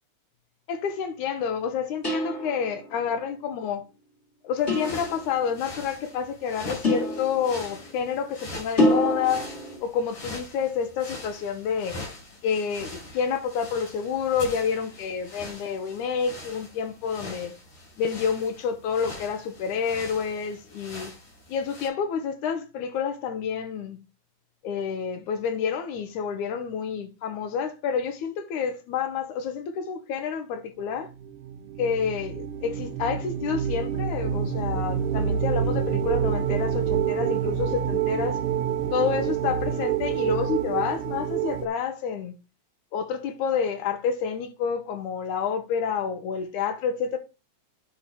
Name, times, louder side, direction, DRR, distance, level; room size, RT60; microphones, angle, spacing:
voice 1, 0.7-3.8 4.4-9.5 9.8-12.0 12.4-17.6 18.0-21.1 21.5-24.0 24.6-31.1 31.8-38.4 38.9-42.3 42.9-47.2, left 6 dB, 80° left, 2.5 m, -29 dB
sound 1, 2.0-2.9 4.7-5.5 6.8-7.9 8.8-9.8, left 1 dB, 20° left, 2.6 m, -26 dB
sound 2, 4.6-21.9, left 2 dB, 65° left, 5.9 m, -43 dB
sound 3, 31.1-41.7, right 9 dB, 75° right, 1.3 m, -27 dB
10.0 x 4.2 x 4.6 m
omnidirectional pair, 3.5 m